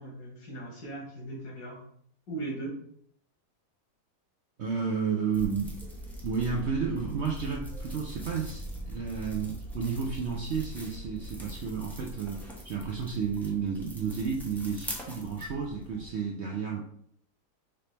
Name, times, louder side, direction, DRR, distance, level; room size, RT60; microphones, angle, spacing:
voice 1, 0.0-1.8 2.3-2.8, right 2 dB, 75° left, -2 dB, 2.0 m, -38 dB
voice 2, 4.6-5.8 6.2-16.8, right 6 dB, 65° right, 0 dB, 0.6 m, -32 dB
sound 1, 5.3-16.1, right 1 dB, 5° left, 0.3 m, -41 dB
5.1 x 2.9 x 3.3 m, 0.66 s
omnidirectional pair, 1.7 m